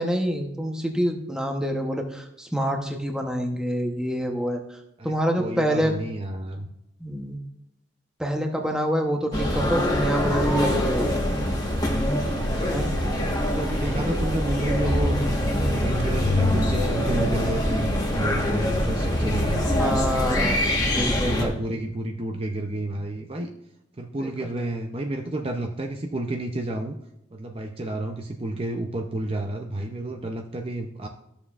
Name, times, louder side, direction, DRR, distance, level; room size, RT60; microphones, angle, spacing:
voice 1, 0.0-4.6 5.0-5.9 7.0-7.4 8.2-11.1 12.7-13.0 19.6-21.5 24.2-24.3, equal, 5° right, 3 dB, 0.9 m, -27 dB
voice 2, 5.0-6.7 12.3-12.8 13.4-15.2 15.5-19.9 20.7-23.5 24.0-27.0 27.3-31.1, right 1 dB, 30° right, 3 dB, 0.6 m, -31 dB
sound 1, 9.3-21.5, left 1 dB, 20° left, 1.3 m, -24 dB
sound 2, 9.3-21.0, right 2 dB, 70° right, 0.8 m, -40 dB
13.0 x 7.1 x 2.5 m, 0.83 s
head